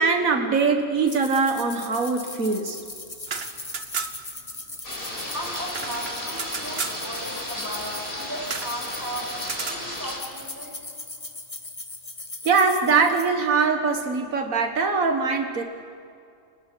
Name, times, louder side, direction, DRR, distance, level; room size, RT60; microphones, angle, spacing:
voice 1, 0.0-2.8 12.5-15.6, right 4 dB, 85° right, 5 dB, 2.0 m, -22 dB
sound 1, 1.1-13.3, left 2 dB, 25° left, 1.7 m, -40 dB
sound 2, 3.1-4.4 4.6-4.7 5.0-7.0 8.4-8.8 9.4-9.8, right 5 dB, 50° right, 1.5 m, -33 dB
sound 3, 4.8-10.2, left 1 dB, 40° left, 5.0 m, -34 dB
voice 2, 5.3-10.7, equal, 15° right, 0 dB, 5.4 m, -36 dB
29.0 x 19.0 x 10.0 m, 2.4 s
omnidirectional pair, 1.4 m